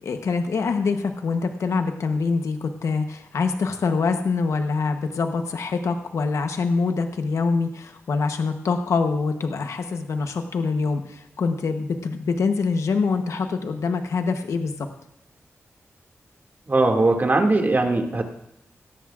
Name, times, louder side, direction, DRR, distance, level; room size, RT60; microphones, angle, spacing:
voice 1, 0.0-14.9, left 4 dB, 85° left, 6 dB, 1.0 m, -25 dB
voice 2, 16.7-18.2, right 2 dB, 40° right, 3 dB, 2.2 m, -20 dB
18.0 x 13.5 x 2.5 m, 0.83 s
cardioid pair, 70°, 5 cm